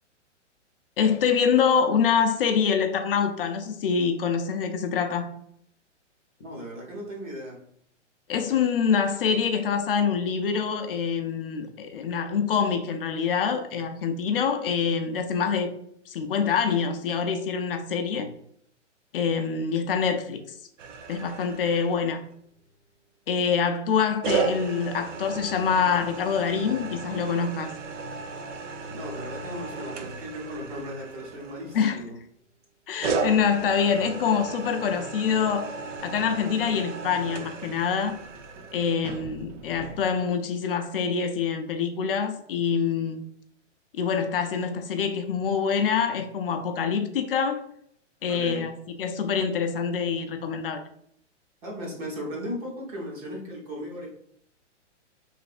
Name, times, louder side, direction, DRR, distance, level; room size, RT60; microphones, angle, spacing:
voice 1, 1.0-5.3 8.3-15.7 16.1-18.3 19.1-20.6 21.1-22.2 23.3-27.8 31.7-32.0 32.9-35.7 36.0-38.2 38.7-43.2 44.0-47.7 48.2-50.8, left 6 dB, 50° left, 0.4 m, -25 dB
voice 2, 6.4-7.6 28.9-32.2 32.9-33.0 48.3-48.7 51.6-54.1, equal, 30° right, 0.8 m, -36 dB
sound 1, 20.8-22.3 24.2-32.1 33.0-40.0, right 5 dB, 75° right, 0.6 m, -35 dB
3.2 x 2.6 x 2.4 m
hypercardioid pair, 150°, 37 cm